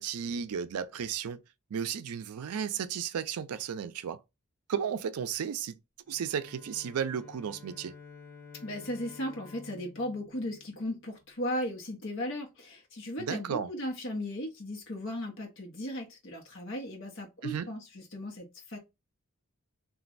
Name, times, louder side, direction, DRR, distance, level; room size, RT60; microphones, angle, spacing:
voice 1, 0.0-1.4 1.7-4.2 4.7-5.8 6.1-7.9 13.2-13.7 17.4-17.7, right 7 dB, 85° right, 0.4 m, -34 dB
Bowed string instrument, 6.1-11.3, left 5 dB, 10° left, 0.8 m, -51 dB
voice 2, 8.6-18.8, left 1 dB, 55° left, 1.0 m, -36 dB
3.0 x 2.5 x 2.5 m
head